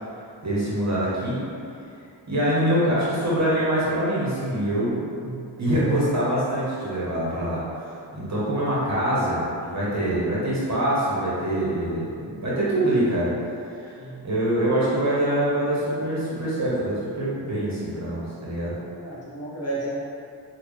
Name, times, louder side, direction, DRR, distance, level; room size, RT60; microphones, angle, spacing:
voice 1, 0.4-1.4 2.3-5.1 5.6-7.6 8.1-13.3 13.8-14.0 14.2-18.8, right 1 dB, 40° right, -8 dB, 0.9 m, -24 dB
voice 2, 19.0-20.0, right 2 dB, 35° left, -7 dB, 0.5 m, -32 dB
3.6 x 2.3 x 3.2 m, 2.5 s
wide cardioid pair, 170°, 43 cm